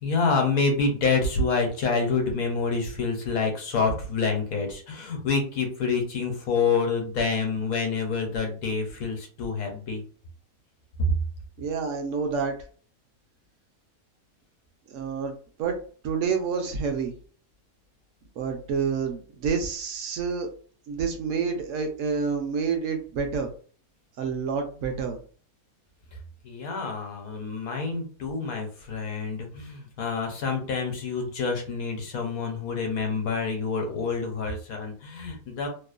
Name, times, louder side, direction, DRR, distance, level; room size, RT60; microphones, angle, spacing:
voice 1, 0.0-10.0 26.4-35.7, left 4 dB, 70° left, 3 dB, 1.2 m, -27 dB
voice 2, 11.6-12.5 14.9-15.8 16.0-17.1 18.4-20.5 20.9-23.5 24.2-25.2, right 5 dB, 65° right, 4 dB, 0.8 m, -28 dB
2.9 x 2.0 x 2.4 m, 0.41 s
omnidirectional pair, 1.6 m